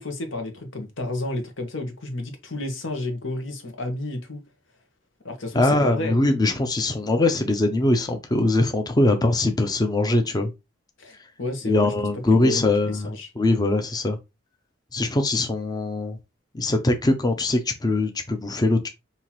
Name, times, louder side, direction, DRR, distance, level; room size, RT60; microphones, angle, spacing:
voice 1, 0.0-4.4 5.2-6.2 11.0-11.9 12.3-13.3, left 2 dB, 90° left, 1.2 m, -31 dB
voice 2, 5.5-10.5 11.6-14.2 14.9-16.2 16.5-18.9, left 2 dB, 20° left, 0.6 m, -22 dB
5.6 x 2.8 x 2.9 m
head